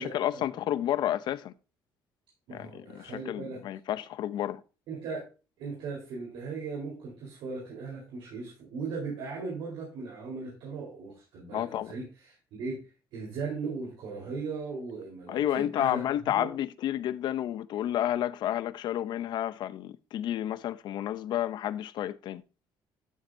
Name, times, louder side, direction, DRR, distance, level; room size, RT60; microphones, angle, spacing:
voice 1, 0.0-1.5 2.5-4.6 11.5-11.9 15.3-22.4, left 12 dB, 65° left, 0.6 m, -31 dB
voice 2, 2.5-3.6 4.9-5.2 5.6-16.5, right 4 dB, 80° right, 4.0 m, -38 dB
12.0 x 7.3 x 2.7 m
cardioid pair, 120°, 8 cm